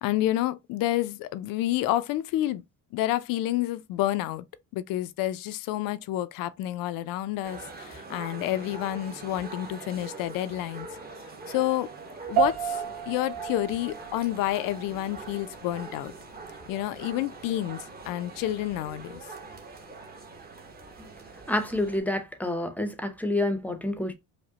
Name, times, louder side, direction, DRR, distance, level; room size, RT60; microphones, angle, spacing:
voice 1, 0.0-2.6 2.9-4.4 4.7-10.9 11.5-11.9 12.3-16.1 16.7-19.2, left 14 dB, 75° left, 0.5 m, -29 dB
sound 1, 7.4-22.0, right 3 dB, 25° right, 1.0 m, -43 dB
sound 2, 12.4-21.9, right 8 dB, 75° right, 1.1 m, -35 dB
voice 2, 21.5-24.1, left 1 dB, 5° left, 0.7 m, -28 dB
5.1 x 2.1 x 2.7 m
cardioid pair, 105°, 34 cm